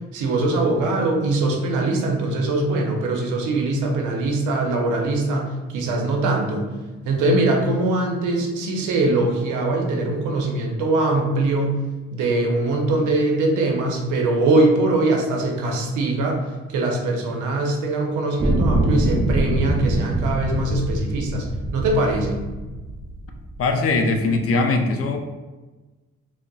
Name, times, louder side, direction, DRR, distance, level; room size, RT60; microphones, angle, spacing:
voice 1, 0.1-6.7 7.0-11.8 12.1-16.4 16.7-22.4, right 2 dB, 85° right, 1 dB, 0.6 m, -22 dB
sound 1, 18.4-23.7 24.4-24.5, right 1 dB, 15° right, 0.3 m, -24 dB
voice 2, 23.6-25.2, left 3 dB, 50° left, 5 dB, 0.4 m, -20 dB
3.6 x 2.0 x 2.2 m, 1.2 s
cardioid pair, 90°, 30 cm